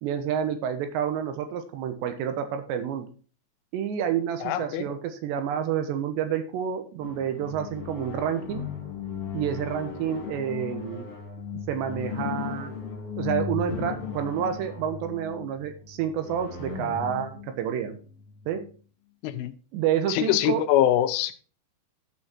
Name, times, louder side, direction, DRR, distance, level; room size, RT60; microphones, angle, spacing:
voice 1, 0.0-3.1 3.7-8.7 9.3-11.1 11.7-12.7 13.2-18.0 18.5-18.6 19.7-20.6, right 9 dB, 75° right, 8 dB, 2.9 m, -29 dB
voice 2, 4.4-4.9 19.2-19.5 20.1-21.3, left 12 dB, 85° left, 9 dB, 3.2 m, -23 dB
sound 1, 7.0-18.6, left 7 dB, 35° left, 3.7 m, -36 dB
12.5 x 6.3 x 4.4 m, 0.39 s
omnidirectional pair, 5.8 m